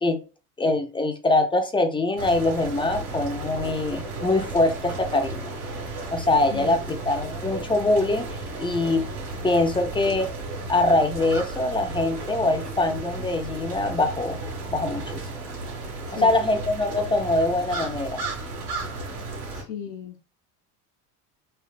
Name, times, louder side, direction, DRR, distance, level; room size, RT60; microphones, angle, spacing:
voice 1, 0.6-5.5 6.1-9.1 9.4-10.3 10.7-14.4 14.7-15.2 16.2-18.2, left 2 dB, 10° left, 0.3 m, -23 dB
sound 1, 2.2-19.6, right 2 dB, 80° right, 1.6 m, -34 dB
voice 2, 6.5-6.9 16.1-16.3 19.5-20.3, left 8 dB, 80° left, 0.7 m, -37 dB
3.3 x 2.8 x 2.3 m
hypercardioid pair, 85°, 47 cm